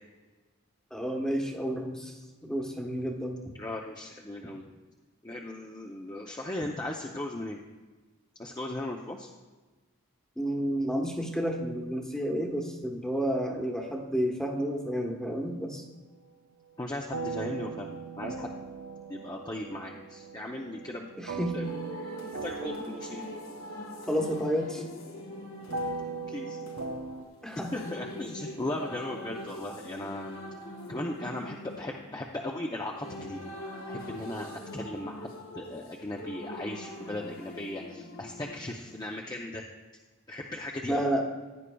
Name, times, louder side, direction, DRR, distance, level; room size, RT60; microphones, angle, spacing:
voice 1, 0.9-2.1 2.4-3.4 10.4-15.8 21.2-21.6 24.1-24.8 27.4-27.8 40.9-41.2, equal, 5° left, 0 dB, 1.1 m, -30 dB
voice 2, 3.6-4.7 5.2-7.6 8.4-9.3 16.8-18.5 19.1-21.1 21.5-21.7 22.0-22.1 22.4-23.2 26.3-26.6 27.5-30.4 30.9-33.4 33.9-39.6 40.3-41.0, left 1 dB, 20° left, -1 dB, 0.6 m, -37 dB
sound 1, 17.1-27.3, right 4 dB, 85° right, 0.9 m, -39 dB
sound 2, 21.6-39.2, left 1 dB, 75° left, 1.5 m, -43 dB
16.0 x 9.7 x 2.3 m, 1.3 s
head